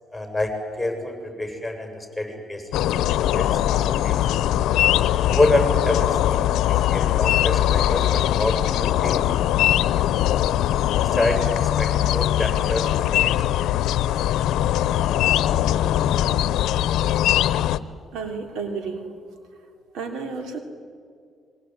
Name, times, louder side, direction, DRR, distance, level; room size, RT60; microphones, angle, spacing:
voice 1, 0.1-2.6 3.1-4.1 5.3-9.2 11.0-13.3, left 2 dB, 5° left, 3 dB, 7.2 m, -27 dB
sound 1, 2.7-17.8, left 12 dB, 85° left, 0.8 m, -21 dB
voice 2, 18.1-19.1 19.9-20.6, right 4 dB, 90° right, 5 dB, 3.2 m, -31 dB
26.0 x 23.0 x 9.3 m, 2.2 s
cardioid pair, 90°, 0 cm